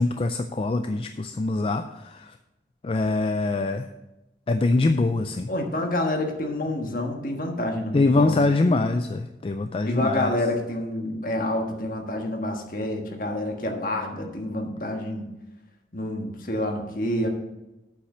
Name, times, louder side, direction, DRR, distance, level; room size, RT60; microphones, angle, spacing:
voice 1, 0.0-2.3 2.8-3.9 4.5-5.5 7.9-10.3, left 3 dB, 30° left, 9 dB, 0.3 m, -23 dB
voice 2, 5.5-8.5 9.8-15.3 15.9-17.3, left 1 dB, 50° left, 3 dB, 1.4 m, -28 dB
8.2 x 5.7 x 6.6 m, 0.99 s
head